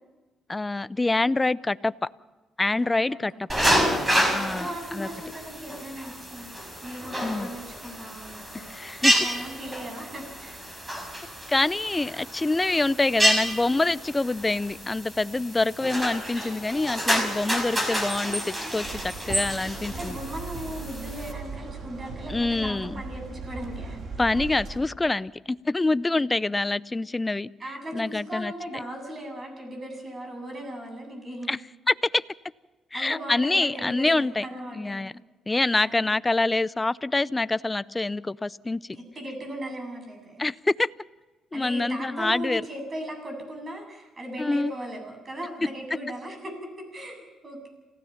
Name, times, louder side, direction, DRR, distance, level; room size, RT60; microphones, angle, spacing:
voice 1, 0.5-1.9 2.6-3.3 4.3-4.7 4.9-5.1 7.2-7.5 8.5-9.1 11.5-20.2 22.3-22.9 24.2-27.5 27.9-28.5 31.5-31.6 31.9-32.2 32.9-34.5 34.8-35.1 35.5-38.8 40.4-40.9 41.5-42.6 44.4-44.7, left 2 dB, 20° left, 17 dB, 0.5 m, -26 dB
voice 2, 2.8-3.2 3.5-3.6 4.3-8.7 9.0-10.6 19.9-24.0 27.6-31.5 32.9-35.0 35.8-36.1 38.9-40.5 41.5-47.7, right 1 dB, 35° right, 3 dB, 8.0 m, -38 dB
sound 1, 3.5-21.3, equal, 20° right, 5.5 m, -29 dB
sound 2, 18.8-24.8, right 4 dB, 55° right, 3.2 m, -38 dB
28.0 x 16.0 x 5.8 m, 1.2 s
cardioid pair, 90°, 0 cm